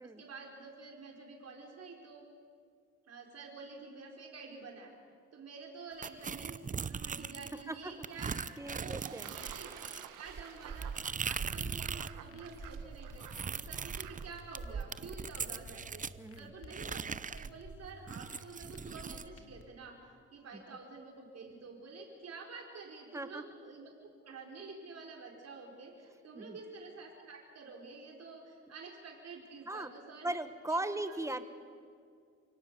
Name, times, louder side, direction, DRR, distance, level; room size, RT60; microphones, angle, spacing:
voice 1, 0.0-2.2 3.1-4.9 5.3-8.4 8.8-16.1 16.4-23.9 24.2-30.4 30.7-30.8 31.3-31.4, right 4 dB, 55° right, 1 dB, 4.5 m, -49 dB
sound 1, 6.0-7.6 8.0-12.2 12.5-16.2 16.7-19.3, right 6 dB, 25° right, 0.7 m, -40 dB
Fowl / Bird / Water, 8.0-14.6, right 9 dB, 85° right, 1.8 m, -52 dB
voice 2, 8.6-9.3 16.2-16.5 20.5-20.6 23.1-23.4 26.3-26.6 29.7-29.9 30.2-31.4, right 1 dB, 10° right, 10 dB, 1.5 m, -38 dB
sound 2, 11.6-19.6, left 2 dB, 45° left, 2.4 m, -53 dB
29.0 x 17.5 x 6.9 m, 2.2 s
cardioid pair, 90°, 30 cm